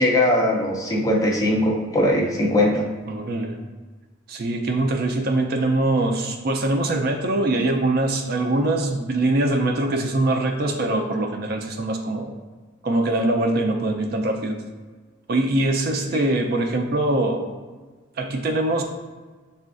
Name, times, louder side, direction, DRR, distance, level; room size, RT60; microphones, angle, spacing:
voice 1, 0.0-2.9, left 1 dB, 15° left, -1 dB, 0.4 m, -20 dB
voice 2, 3.1-3.6 4.3-12.3 12.8-14.6 15.3-17.5 18.2-18.8, right 2 dB, 50° right, 3 dB, 0.4 m, -23 dB
6.6 x 2.4 x 2.4 m, 1.4 s
head